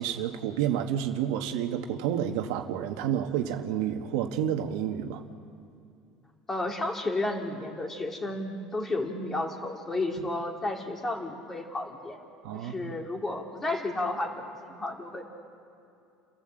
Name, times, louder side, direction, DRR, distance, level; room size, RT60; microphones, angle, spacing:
voice 1, 0.0-5.2 12.4-12.9, right 10 dB, 85° right, 5 dB, 1.4 m, -30 dB
voice 2, 6.5-12.2 12.5-15.2, left 2 dB, 15° left, 2 dB, 2.6 m, -32 dB
29.5 x 14.0 x 7.7 m, 2.6 s
cardioid pair, 135°, 2 cm